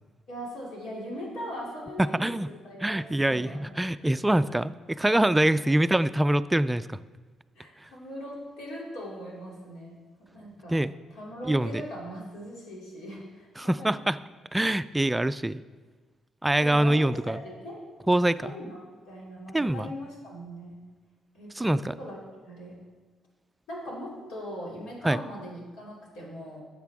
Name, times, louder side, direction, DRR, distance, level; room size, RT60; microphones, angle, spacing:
voice 1, 0.3-3.9 5.2-5.3 7.5-10.8 11.1-14.0 16.6-17.8 18.4-18.8 19.1-20.8 21.3-22.2 22.4-22.7 23.7-26.6, equal, 90° left, -4 dB, 2.9 m, -40 dB
voice 2, 2.0-2.5 2.8-7.0 10.7-10.9 11.5-11.7 13.6-14.2 14.5-15.6 16.4-17.4 18.1-18.4 19.5-19.9 21.6-21.9 25.0-25.2, right 1 dB, 10° right, 13 dB, 0.3 m, -24 dB
12.5 x 7.3 x 3.6 m, 1.4 s
cardioid pair, 90°, 0 cm